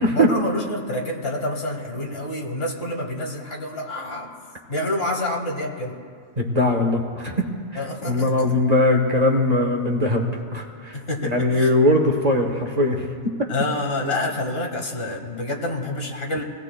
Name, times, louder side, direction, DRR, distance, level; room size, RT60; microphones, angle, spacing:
voice 1, 0.1-4.3 4.7-6.0 7.8-8.5 10.9-11.7 13.5-16.4, left 1 dB, 65° left, 1 dB, 2.0 m, -27 dB
voice 2, 6.4-7.4 8.0-13.1, left 1 dB, 40° right, 2 dB, 1.3 m, -20 dB
24.5 x 17.5 x 2.2 m, 2.1 s
omnidirectional pair, 1.1 m